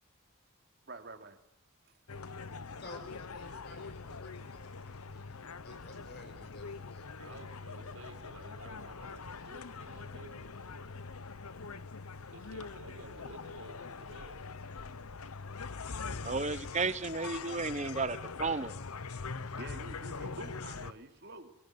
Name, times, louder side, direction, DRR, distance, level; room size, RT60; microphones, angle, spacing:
voice 1, 0.9-1.4 8.4-8.9 19.5-21.5, right 2 dB, 50° right, 2.9 m, -48 dB
sound 1, 2.1-20.9, left 4 dB, 85° left, 1.0 m, -43 dB
voice 2, 2.8-7.4 7.8-8.2, left 2 dB, 45° left, 6.0 m, -53 dB
voice 3, 7.2-11.1 12.3-14.4, right 2 dB, 75° right, 6.2 m, -53 dB
voice 4, 16.2-18.7, right 4 dB, 30° right, 1.0 m, -33 dB
23.0 x 22.5 x 9.5 m
head